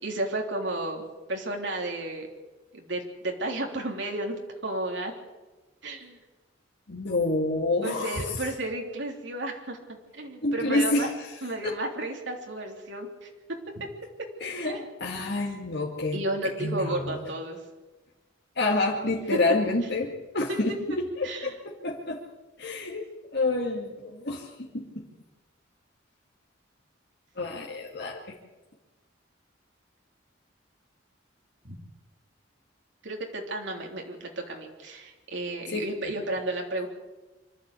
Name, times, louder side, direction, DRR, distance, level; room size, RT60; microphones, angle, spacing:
voice 1, 0.0-2.3 2.7-5.1 5.8-6.2 7.8-9.8 10.1-11.1 11.4-13.9 14.2-14.3 14.6-14.8 16.1-17.6 20.7-21.0 21.2-21.5 31.6-31.8 33.0-36.9, right 1 dB, 65° right, 2 dB, 3.3 m, -33 dB
voice 2, 6.9-8.4 10.4-11.1 11.6-11.7 14.4-16.2 16.6-17.2 18.6-22.2 22.6-25.1 27.4-28.2 35.7-35.8, left 2 dB, 60° left, -2 dB, 2.2 m, -28 dB
25.0 x 12.5 x 8.4 m, 1.2 s
head